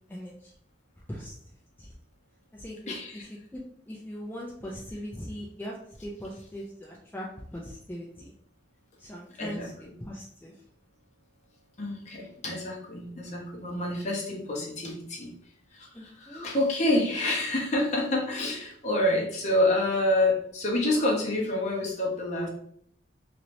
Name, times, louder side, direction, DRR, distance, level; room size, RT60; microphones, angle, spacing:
voice 1, 0.1-0.5 1.1-1.3 1.8-1.9 2.5-7.3 7.5-8.3 9.0-9.7 10.0-10.5 15.9-16.5, equal, 10° left, -4 dB, 0.4 m, -40 dB
voice 2, 2.9-3.3 9.4-9.7 11.8-15.3 15.7-22.5, left 1 dB, 40° left, -1 dB, 0.8 m, -28 dB
3.0 x 2.9 x 2.6 m, 0.67 s
head